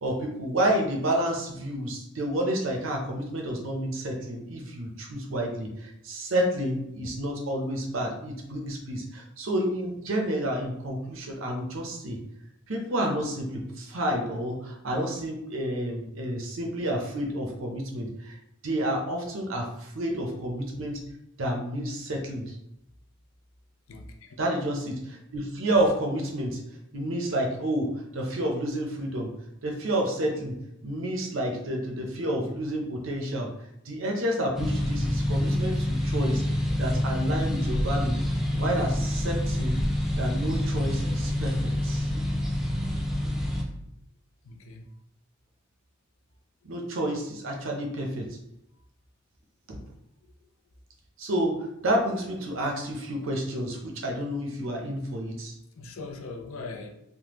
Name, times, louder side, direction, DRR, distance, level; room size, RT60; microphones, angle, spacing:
voice 1, 0.0-12.2 12.7-18.4 18.6-21.0 21.4-22.6 24.4-26.6 26.9-29.3 29.6-33.5 33.8-36.4 36.8-38.2 38.5-39.8 40.2-42.1 46.6-48.4 49.7-49.8 51.2-51.6 51.8-55.6, right 1 dB, 70° right, 1 dB, 0.7 m, -30 dB
voice 2, 23.9-24.3 44.4-44.9 55.8-56.9, left 3 dB, 90° left, 4 dB, 0.5 m, -40 dB
sound 1, 34.6-43.6, left 1 dB, ahead, 0.4 m, -27 dB
3.5 x 2.1 x 3.0 m, 0.81 s
head